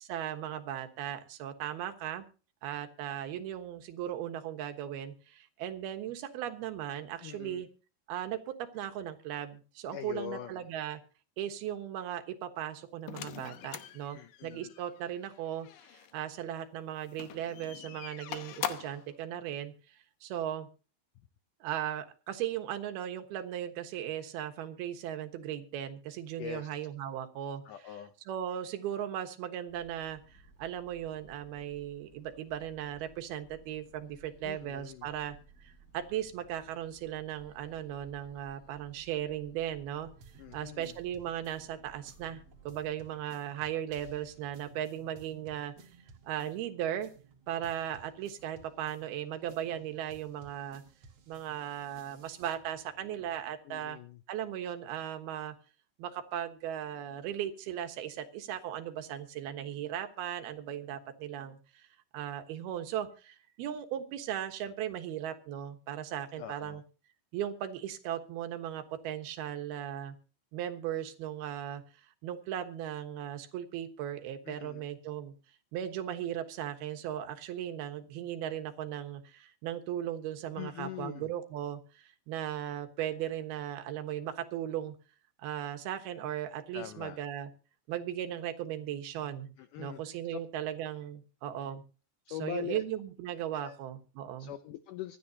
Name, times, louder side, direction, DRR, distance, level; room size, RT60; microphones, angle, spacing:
voice 1, 0.0-2.3 2.6-7.7 8.1-11.0 11.4-20.7 21.6-27.6 28.3-40.1 40.5-45.7 46.3-47.1 47.5-50.8 51.3-54.0 54.3-55.5 56.0-61.9 62.1-66.8 67.3-70.2 70.5-71.8 72.2-75.3 75.7-85.0 85.4-87.5 87.9-89.5 89.8-91.8 92.4-94.5, right 10 dB, 75° right, 7 dB, 3.2 m, -37 dB
voice 2, 7.2-7.7 9.9-10.7 14.1-14.7 26.4-26.7 27.7-28.1 34.4-35.1 40.4-40.9 53.6-54.2 66.4-66.8 74.5-74.9 80.6-81.3 86.7-87.2 89.6-90.4 91.6-91.7 92.3-92.8 93.5-93.8 94.4-95.2, left 11 dB, 90° left, 10 dB, 1.8 m, -42 dB
sound 1, 13.1-16.1 17.1-19.1, left 11 dB, 70° left, 2.3 m, -42 dB
sound 2, 29.7-42.9, right 3 dB, 30° left, 6.1 m, -59 dB
sound 3, 39.9-53.6, right 5 dB, 50° right, 2.2 m, -58 dB
25.0 x 10.0 x 2.8 m, 0.35 s
omnidirectional pair, 4.6 m